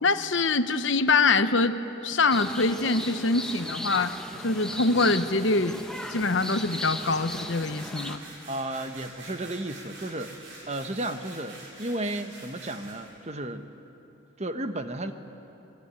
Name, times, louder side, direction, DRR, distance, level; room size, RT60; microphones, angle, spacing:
voice 1, 0.0-1.8 2.0-4.1 4.4-5.8 6.1-8.2, left 3 dB, 65° left, 10 dB, 1.0 m, -24 dB
sound 1, 2.3-8.2, left 1 dB, 5° left, 1.1 m, -37 dB
sound 2, 2.5-13.1, right 2 dB, 65° right, 7.1 m, -48 dB
voice 2, 8.5-13.7 14.4-15.1, right 1 dB, 30° right, 8 dB, 1.2 m, -33 dB
25.0 x 22.0 x 9.7 m, 3.0 s
head